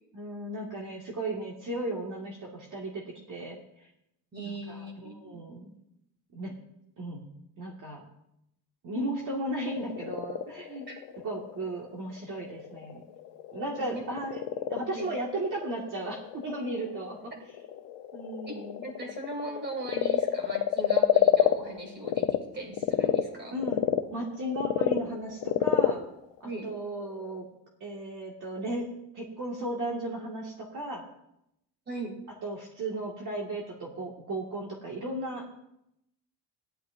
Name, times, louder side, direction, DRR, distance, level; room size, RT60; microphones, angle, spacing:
voice 1, 0.1-3.0 3.3-3.9 4.4-5.7 6.3-6.5 7.0-7.3 7.6-8.0 8.8-10.9 11.2-13.0 13.5-14.4 14.7-17.3 18.1-18.9 23.5-26.0 26.6-27.4 27.8-28.9 29.1-31.0 32.4-35.4, right 1 dB, 45° right, -3 dB, 1.9 m, -35 dB
voice 2, 4.3-5.4 10.9-11.0 13.8-14.0 14.9-15.1 18.4-18.5 18.8-23.5 26.4-26.7 31.9-32.2, right 2 dB, 25° right, 1 dB, 2.6 m, -39 dB
Frog, 9.5-22.4 22.7-27.4, left 12 dB, 80° left, 0.8 m, -29 dB
18.0 x 11.0 x 2.6 m, 0.80 s
cardioid pair, 160°, 43 cm